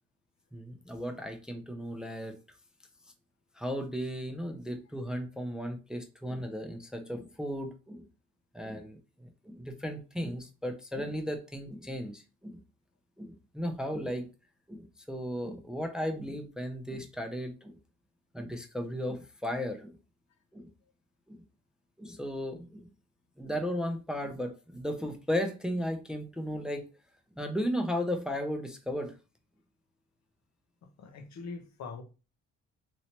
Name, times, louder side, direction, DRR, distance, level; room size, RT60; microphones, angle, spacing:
voice 1, 0.5-2.3 3.6-8.0 8.5-12.6 13.2-14.3 14.7-17.8 18.3-20.0 20.5-20.7 21.3-21.4 22.0-22.9 23.4-26.9 27.4-29.1, equal, ahead, 0.4 m, -35 dB
voice 2, 30.8-32.0, left 4 dB, 65° left, 0.7 m, -43 dB
3.1 x 2.8 x 2.8 m
cardioid pair, 90°, 30 cm